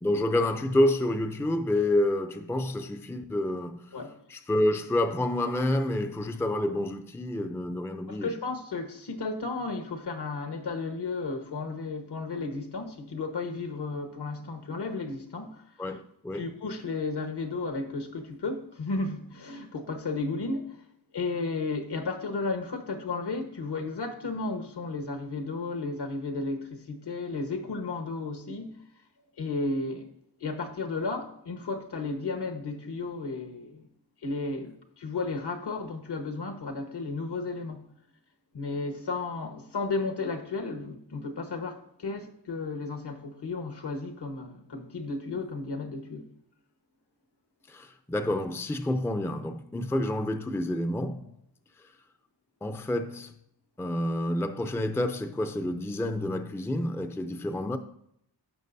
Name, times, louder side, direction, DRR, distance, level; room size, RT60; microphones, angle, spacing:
voice 1, 0.0-3.9 4.3-8.3 15.8-16.5 47.7-51.3 52.6-53.3 53.8-57.8, left 1 dB, 5° left, 0.5 m, -28 dB
voice 2, 8.1-15.6 16.3-20.8 21.1-28.8 29.4-30.1 30.4-33.8 34.2-37.9 38.5-46.3, left 3 dB, 65° left, 1.3 m, -33 dB
14.5 x 5.9 x 2.7 m
wide cardioid pair, 100°, 43 cm